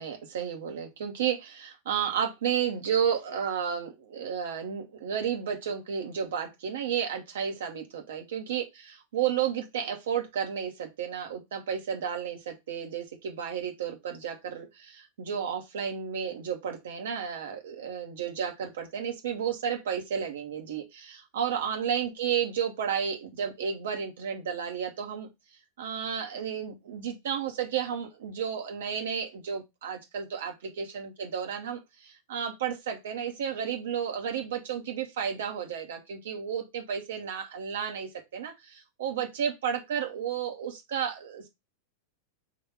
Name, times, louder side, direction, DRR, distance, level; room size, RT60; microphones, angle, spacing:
voice 1, 0.0-25.3 25.8-41.5, right 8 dB, 60° right, 3 dB, 1.1 m, -32 dB
3.8 x 2.7 x 4.7 m, 0.21 s
figure-of-eight pair, 90°, 0 cm